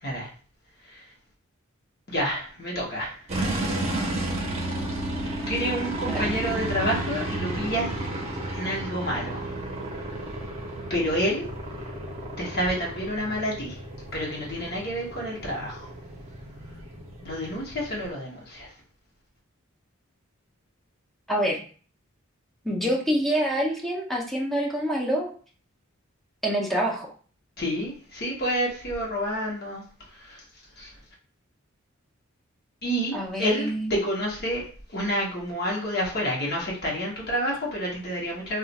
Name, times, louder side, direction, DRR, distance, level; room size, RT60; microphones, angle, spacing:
voice 1, 2.1-3.2 5.5-7.9 8.5-9.5 10.9-11.5 12.4-13.8 14.1-15.9 17.2-18.7 27.6-29.8 30.2-30.4 30.8-30.9 32.8-34.6 34.9-38.6, equal, 50° left, -3 dB, 1.0 m, -29 dB
sound 1, 3.3-18.1, right 1 dB, 30° right, 0.8 m, -32 dB
voice 2, 21.3-21.6 22.6-25.3 26.4-27.1 33.1-33.9, equal, ahead, -2 dB, 0.6 m, -26 dB
2.5 x 2.3 x 3.9 m, 0.40 s
head